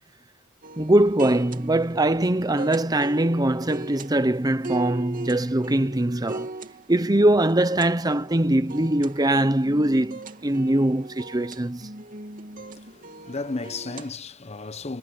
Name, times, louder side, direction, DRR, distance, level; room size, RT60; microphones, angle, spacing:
sound 1, 0.6-14.2, right 2 dB, 45° right, 2.9 m, -39 dB
voice 1, 0.8-6.5 6.9-11.9, right 1 dB, 20° right, 0.9 m, -22 dB
voice 2, 12.6-15.0, left 3 dB, 35° left, 1.0 m, -34 dB
head